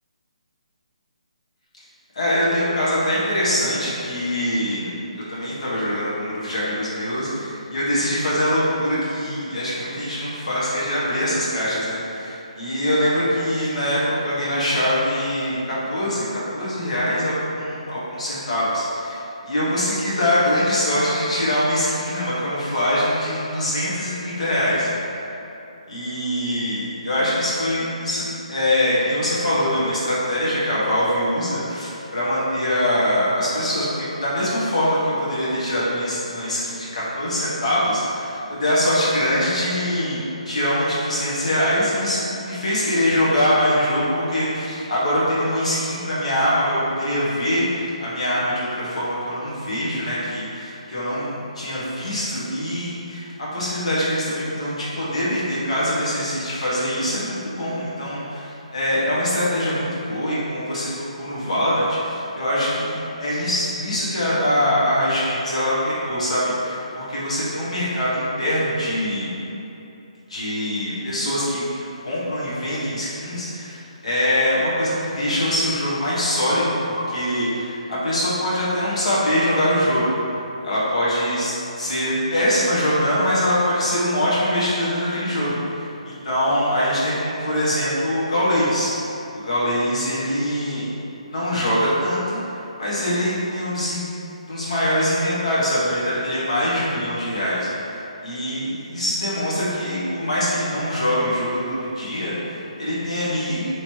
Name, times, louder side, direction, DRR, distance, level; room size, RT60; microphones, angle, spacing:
voice 1, 2.1-24.9 25.9-60.9 61.2-69.3 70.3-80.2 80.6-88.9 89.4-90.9 91.3-94.1 94.5-103.7, equal, 60° left, -8 dB, 1.2 m, -23 dB
3.2 x 3.1 x 2.8 m, 2.8 s
hypercardioid pair, 170°, 4 cm